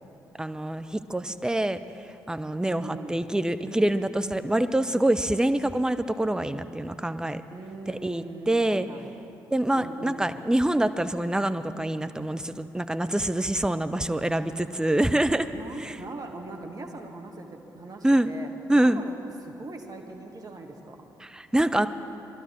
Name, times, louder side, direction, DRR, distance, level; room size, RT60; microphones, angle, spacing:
voice 1, 0.4-7.4 7.9-8.9 9.5-15.5 15.8-16.0 18.0-18.3 18.7-19.0 21.2-21.9, right 1 dB, 5° right, 10 dB, 0.6 m, -25 dB
voice 2, 2.7-3.2 7.5-9.2 9.7-10.4 14.6-15.2 15.5-19.1 19.4-21.1, right 3 dB, 35° right, 2 dB, 1.5 m, -41 dB
21.0 x 12.0 x 4.4 m, 2.9 s
hypercardioid pair, 40°, 11 cm